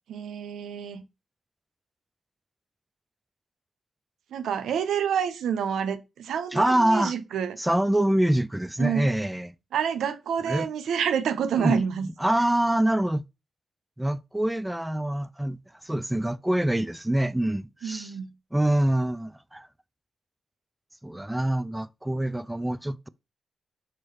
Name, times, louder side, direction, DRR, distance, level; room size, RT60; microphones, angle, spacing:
voice 1, 0.1-1.0 4.3-7.6 8.8-9.1 9.7-12.1 17.8-18.3, right 8 dB, 80° right, 0.5 m, -28 dB
voice 2, 6.5-7.1 7.6-9.5 10.4-10.7 11.6-13.2 14.0-18.1 18.5-19.7 21.0-23.1, right 1 dB, 10° right, 0.3 m, -25 dB
4.6 x 3.0 x 3.2 m
supercardioid pair, 50°, 0 cm